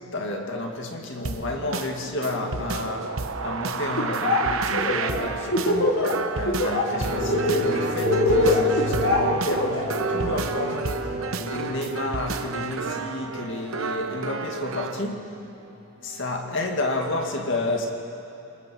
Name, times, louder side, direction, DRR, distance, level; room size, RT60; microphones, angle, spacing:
voice 1, 0.0-6.1 6.3-15.4 16.0-17.9, left 2 dB, 65° left, 1 dB, 2.2 m, -31 dB
sound 1, 1.2-15.1, right 4 dB, 90° right, 0.9 m, -31 dB
Laughter, 4.0-4.4 4.7-6.1 6.5-6.8 7.2-10.0, left 1 dB, 90° left, 2.8 m, -22 dB
sound 2, 6.7-15.7 16.1-16.2, right 1 dB, 45° right, 4.8 m, -32 dB
27.5 x 21.5 x 4.6 m, 3.0 s
head